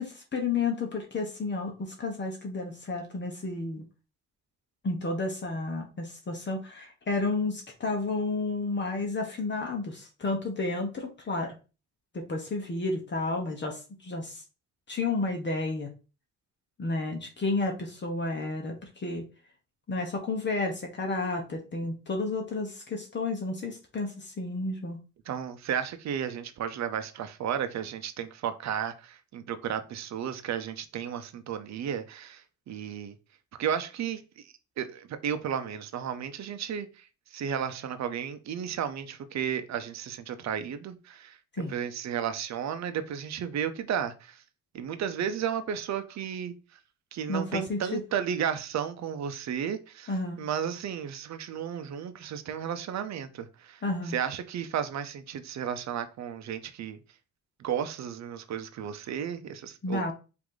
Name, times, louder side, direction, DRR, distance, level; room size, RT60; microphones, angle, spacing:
voice 1, 0.0-3.8 4.8-11.5 12.1-14.4 14.9-15.9 16.8-19.2 19.9-25.0 41.5-41.8 47.3-48.0 50.1-50.4 53.8-54.2 59.8-60.1, left 3 dB, 40° left, 1.2 m, -31 dB
voice 2, 25.3-33.2 33.6-41.4 41.7-44.4 44.7-46.5 47.1-57.0 57.6-60.1, right 8 dB, 70° right, 0.7 m, -33 dB
4.8 x 2.8 x 3.9 m
cardioid pair, 90°, 29 cm